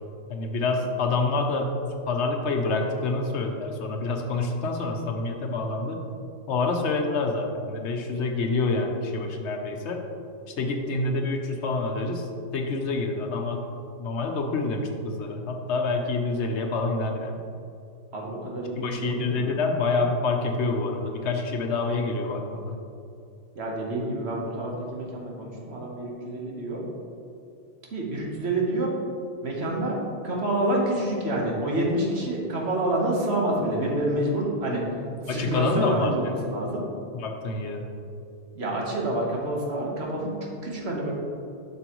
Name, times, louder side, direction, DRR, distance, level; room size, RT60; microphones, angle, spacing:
voice 1, 0.3-1.7 2.1-6.0 6.5-10.0 10.6-13.6 14.0-17.4 18.8-22.8 35.0-36.3 37.1-37.8, left 3 dB, 85° left, 3 dB, 1.1 m, -27 dB
voice 2, 18.1-19.6 23.5-26.8 27.9-28.9 29.4-34.8 35.2-36.8 38.5-41.1, right 1 dB, 70° right, -2 dB, 1.5 m, -28 dB
7.6 x 6.1 x 3.0 m, 2.6 s
omnidirectional pair, 1.1 m